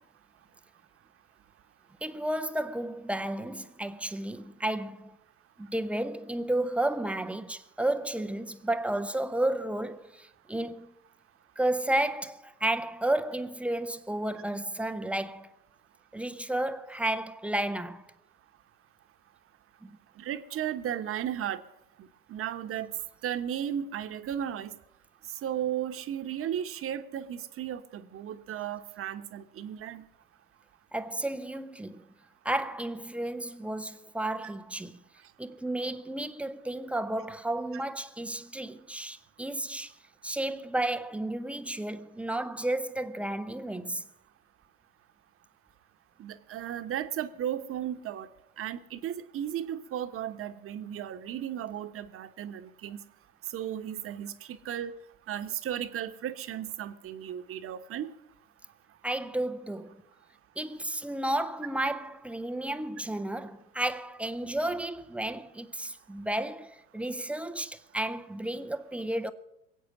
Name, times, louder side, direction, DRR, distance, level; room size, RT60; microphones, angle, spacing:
voice 1, 2.0-5.2 5.6-10.9 11.6-15.5 16.1-18.0 19.8-19.9 30.9-32.1 32.4-35.0 35.4-39.9 40.2-44.1 59.0-60.0 60.6-69.3, right 1 dB, 5° right, 0.5 m, -32 dB
voice 2, 20.2-21.6 22.0-22.9 23.2-24.7 25.4-30.1 46.2-48.3 48.6-53.0 53.5-54.9 55.3-58.1, right 10 dB, 30° right, 1.1 m, -35 dB
21.5 x 8.5 x 7.3 m
hypercardioid pair, 90°, 45 cm